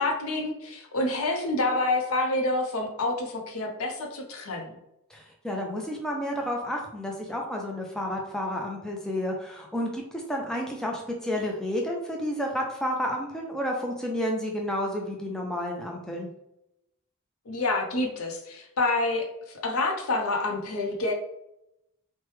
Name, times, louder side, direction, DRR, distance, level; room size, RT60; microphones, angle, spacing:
voice 1, 0.0-4.7 17.5-19.3 19.6-21.1, left 2 dB, 80° left, 2 dB, 0.6 m, -27 dB
voice 2, 5.1-16.3, equal, 5° left, -1 dB, 0.3 m, -31 dB
3.1 x 2.1 x 3.2 m, 0.85 s
head